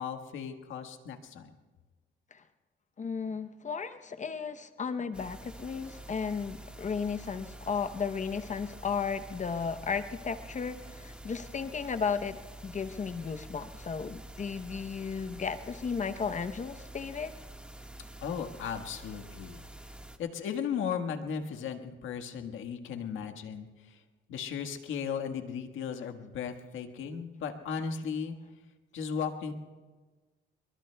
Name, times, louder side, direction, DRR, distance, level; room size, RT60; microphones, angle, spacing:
voice 1, 0.0-1.5 18.2-19.6 20.2-24.0 24.3-28.4 28.9-29.5, left 7 dB, 85° left, 6 dB, 1.6 m, -36 dB
voice 2, 3.0-12.4 12.6-17.3, left 6 dB, 40° left, 10 dB, 0.8 m, -34 dB
sound 1, 5.1-20.2, right 1 dB, 5° right, 1.5 m, -48 dB
28.0 x 22.5 x 2.3 m, 1.3 s
cardioid pair, 90°, 20 cm